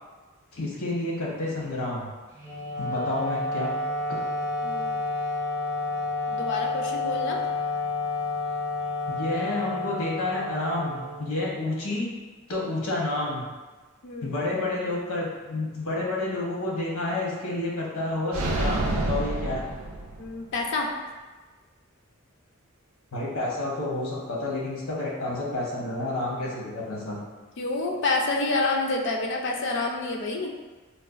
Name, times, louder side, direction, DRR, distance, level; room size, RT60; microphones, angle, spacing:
voice 1, 0.5-2.1 2.8-3.7 4.1-4.2 9.1-12.1 12.5-13.4 14.2-19.6 23.1-27.2, left 2 dB, 80° left, -4 dB, 0.9 m, -29 dB
Wind instrument woodwind instrument, 2.3-11.7, left 3 dB, 10° right, 0.6 m, -30 dB
voice 2, 4.6-5.0 6.3-7.4 14.0-14.4 20.2-20.9 27.6-30.5, left 2 dB, 60° left, 1 dB, 0.4 m, -28 dB
sound 1, 18.3-20.5, right 2 dB, 75° right, 0.4 m, -28 dB
4.0 x 2.2 x 2.4 m, 1.3 s
head